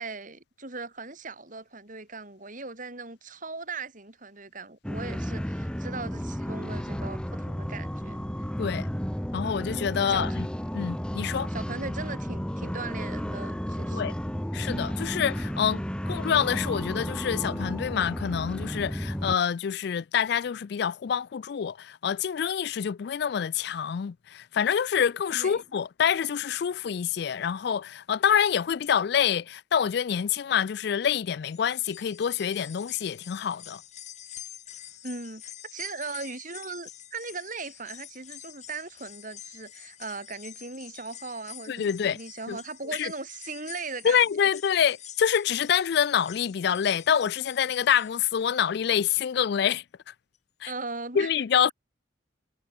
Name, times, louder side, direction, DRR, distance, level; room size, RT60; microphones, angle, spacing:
voice 1, 0.0-8.7 10.1-10.3 11.5-14.0 25.3-25.6 35.0-44.5 50.7-51.3, right 3 dB, 45° right, 6.1 m, -39 dB
sound 1, 4.8-19.4, equal, 5° left, 0.9 m, -32 dB
voice 2, 9.3-10.5 10.7-11.5 13.9-14.1 14.5-33.8 41.7-42.2 42.5-42.6 42.9-43.1 44.0-50.1 50.6-50.7 51.1-51.7, left 8 dB, 60° left, 0.4 m, -26 dB
sound 2, 31.4-48.8 49.2-49.3 50.4-50.5, left 10 dB, 40° left, 3.8 m, -47 dB
head